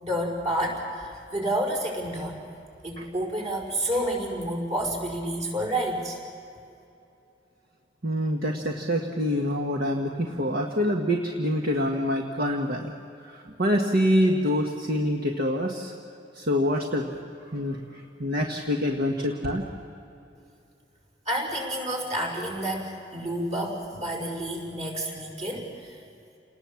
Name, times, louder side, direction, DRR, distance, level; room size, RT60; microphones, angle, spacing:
voice 1, 0.0-2.4 2.8-6.2 21.3-25.9, right 1 dB, 40° right, -1 dB, 5.3 m, -29 dB
voice 2, 8.0-12.9 13.3-15.9 16.4-17.1 17.5-17.8 18.2-19.7, equal, 55° right, 2 dB, 1.5 m, -26 dB
29.5 x 19.5 x 7.2 m, 2.7 s
head